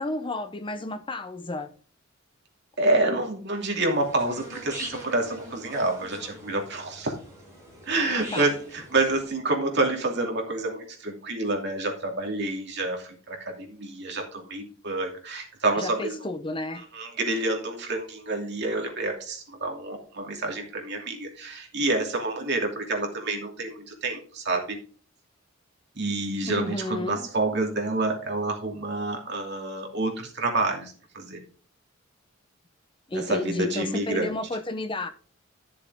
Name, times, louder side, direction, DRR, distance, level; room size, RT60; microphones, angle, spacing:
voice 1, 0.0-1.7 8.0-8.5 15.8-16.8 26.5-27.3 33.1-35.1, left 2 dB, 25° left, 0.7 m, -32 dB
voice 2, 2.8-7.2 7.9-16.1 16.8-24.8 25.9-31.4 33.1-34.4, right 2 dB, 55° right, 2.7 m, -28 dB
sound 1, 3.9-9.3, right 1 dB, 15° right, 5.9 m, -42 dB
11.5 x 6.9 x 3.6 m
head